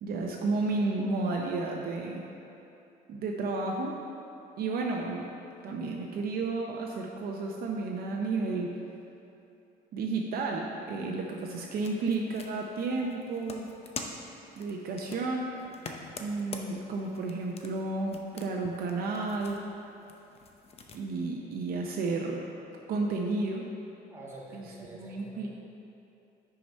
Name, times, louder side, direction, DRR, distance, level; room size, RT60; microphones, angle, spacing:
voice 1, 0.0-2.2 3.1-4.0 4.6-5.3 5.6-8.7 9.9-13.7 14.6-15.6 16.2-19.6 20.9-22.4 22.9-23.7 24.5-24.6 25.0-25.5, right 3 dB, 60° right, 0 dB, 0.6 m, -32 dB
sound 1, 11.4-21.0, left 4 dB, 35° left, 0.6 m, -46 dB
voice 2, 24.1-25.5, right 1 dB, 15° right, -6 dB, 1.6 m, -47 dB
6.2 x 4.7 x 5.3 m, 2.8 s
cardioid pair, 110°, 17 cm